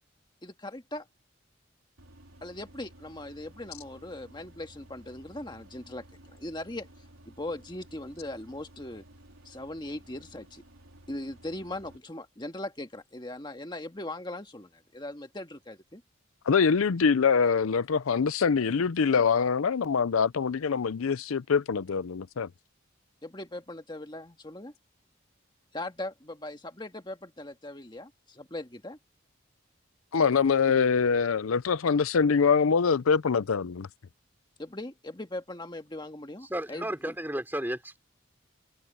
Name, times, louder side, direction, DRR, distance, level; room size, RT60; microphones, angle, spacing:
voice 1, 0.4-1.1 2.4-6.9 7.2-9.0 9.4-10.6 11.1-16.0 23.2-24.7 25.7-29.0 34.6-37.1, left 1 dB, 20° left, 1.7 m, -39 dB
sound 1, 2.0-12.0, right 1 dB, 85° right, 3.9 m, -54 dB
voice 2, 16.5-22.5 30.1-33.9, left 5 dB, 85° left, 0.5 m, -24 dB
voice 3, 36.5-38.0, right 1 dB, 10° right, 3.1 m, -33 dB
head